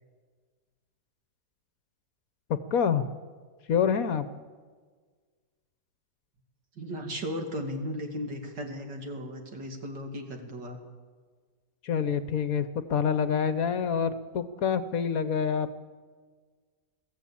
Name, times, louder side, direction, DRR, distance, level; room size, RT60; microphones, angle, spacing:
voice 1, 2.7-3.1 3.7-4.3 11.8-15.7, left 7 dB, 60° left, 12 dB, 1.2 m, -27 dB
voice 2, 6.8-10.8, equal, 80° right, 3 dB, 3.1 m, -36 dB
22.0 x 14.5 x 8.6 m, 1.5 s
omnidirectional pair, 1.9 m